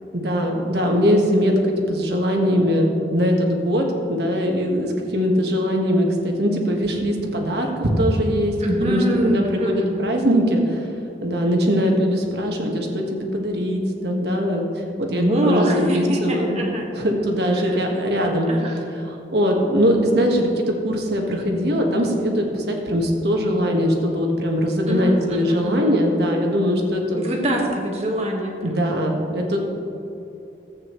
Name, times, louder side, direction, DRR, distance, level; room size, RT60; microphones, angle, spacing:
voice 1, 0.1-1.6 1.9-8.5 8.8-10.9 11.2-16.6 16.9-18.5 18.9-27.2 28.6-29.7, equal, 65° right, 1 dB, 1.5 m, -21 dB
voice 2, 8.6-10.0 15.1-16.9 17.5-17.9 18.5-18.7 24.9-26.0 27.1-28.8, right 1 dB, 35° right, 0 dB, 1.5 m, -24 dB
14.5 x 8.7 x 3.2 m, 2.8 s
head